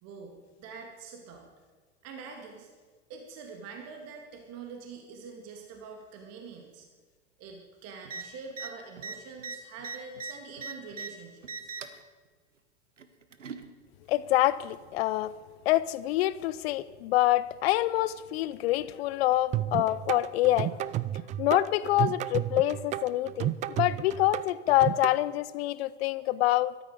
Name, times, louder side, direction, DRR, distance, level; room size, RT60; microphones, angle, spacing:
voice 1, 0.0-1.5 2.0-2.7 3.1-6.9 7.4-11.7, right 5 dB, 45° right, 2.3 m, -45 dB
sound 1, 8.0-8.2 8.5-8.7 9.0-11.1 11.4-12.0 13.0-13.7 14.7-14.8, right 4 dB, 90° right, 1.0 m, -39 dB
voice 2, 14.1-15.3 15.7-20.7 21.4-26.7, left 15 dB, 60° left, 0.6 m, -26 dB
sound 2, 19.5-25.1, right 13 dB, 20° right, 0.3 m, -32 dB
13.5 x 13.0 x 5.1 m
hypercardioid pair, 90°, 36 cm